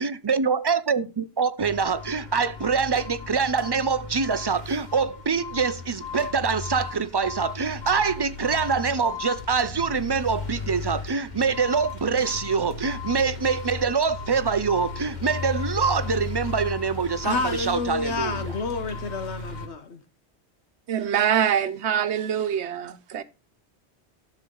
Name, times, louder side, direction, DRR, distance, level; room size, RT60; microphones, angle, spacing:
voice 1, 0.0-18.5, right 5 dB, 35° right, 0.4 m, -25 dB
sound 1, 1.6-19.7, left 5 dB, 45° left, 1.4 m, -36 dB
voice 2, 17.2-20.0, left 3 dB, 80° left, 1.4 m, -29 dB
voice 3, 20.9-23.2, right 9 dB, 85° right, 1.1 m, -24 dB
13.0 x 6.4 x 3.8 m
omnidirectional pair, 1.1 m